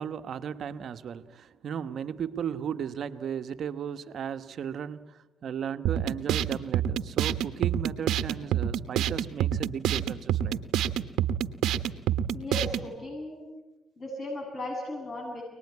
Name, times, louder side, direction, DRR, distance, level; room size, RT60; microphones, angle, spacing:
voice 1, 0.0-10.6, right 8 dB, 60° right, 1.1 m, -36 dB
sound 1, 5.8-12.9, right 10 dB, 85° right, 1.0 m, -28 dB
voice 2, 12.3-13.4 14.0-15.4, left 1 dB, 45° left, 8.0 m, -36 dB
24.5 x 20.0 x 9.5 m
cardioid pair, 90°, 0 cm